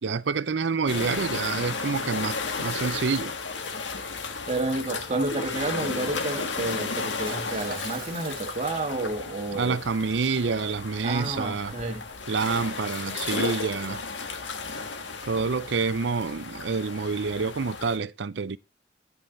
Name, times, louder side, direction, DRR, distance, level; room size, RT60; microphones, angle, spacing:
voice 1, 0.0-3.3 9.5-11.7 12.3-14.0 15.3-18.6, right 5 dB, 70° right, 0.5 m, -27 dB
sound 1, 0.9-18.0, left 4 dB, 85° left, 1.7 m, -34 dB
voice 2, 4.5-9.8 11.0-12.0, right 2 dB, 35° right, 1.8 m, -30 dB
Shatter, 7.3-9.1 9.5-9.8, right 8 dB, 55° right, 2.1 m, -45 dB
9.5 x 8.9 x 4.0 m
head